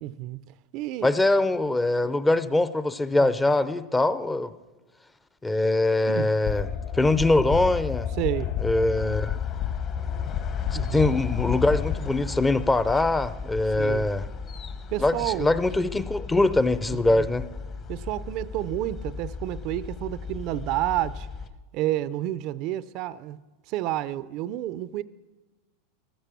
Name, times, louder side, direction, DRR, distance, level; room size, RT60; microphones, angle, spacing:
voice 1, 0.0-0.4 0.7-1.1 3.2-3.3 6.1-6.3 8.2-8.5 10.7-11.1 13.8-14.1 14.9-15.5 16.9-17.2 17.9-21.3 21.7-23.4 23.7-25.0, right 14 dB, 50° right, 0.5 m, -30 dB
voice 2, 1.0-4.5 5.4-6.7 6.9-8.1 8.6-9.4 10.9-14.3 15.0-17.4, left 2 dB, 10° left, 0.6 m, -23 dB
sound 1, 6.4-12.0, left 9 dB, 55° left, 2.1 m, -30 dB
sound 2, 9.0-21.5, left 5 dB, 35° left, 1.1 m, -36 dB
14.0 x 13.5 x 6.9 m
supercardioid pair, 125°, 0 cm